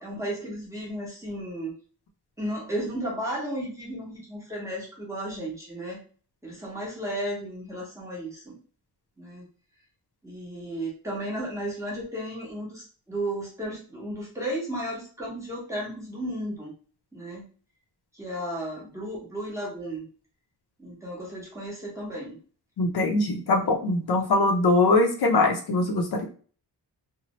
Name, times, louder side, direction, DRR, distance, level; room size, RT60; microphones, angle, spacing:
voice 1, 0.0-1.7 2.4-6.0 6.4-8.6 9.2-9.5 10.2-16.7 17.1-17.5 18.1-20.1 20.8-22.4, right 1 dB, 5° right, -5 dB, 0.9 m, -34 dB
voice 2, 22.8-26.2, left 2 dB, 65° left, 2 dB, 0.6 m, -22 dB
2.7 x 2.0 x 2.9 m, 0.40 s
wide cardioid pair, 170°, 41 cm